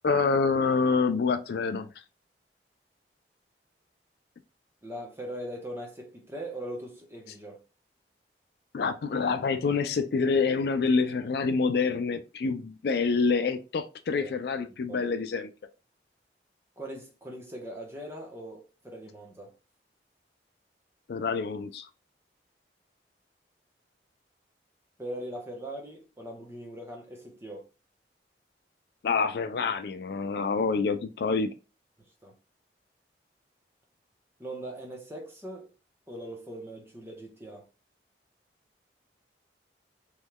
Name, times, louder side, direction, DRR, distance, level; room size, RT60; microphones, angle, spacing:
voice 1, 0.0-1.9 8.7-15.5 21.1-21.8 29.0-31.5, left 4 dB, 60° left, 0.4 m, -27 dB
voice 2, 4.8-7.6 14.1-14.3 14.7-15.0 16.8-19.6 25.0-27.7 32.2-32.3 34.4-35.7 36.1-37.6, right 1 dB, 15° right, 0.9 m, -40 dB
3.5 x 3.1 x 2.2 m
head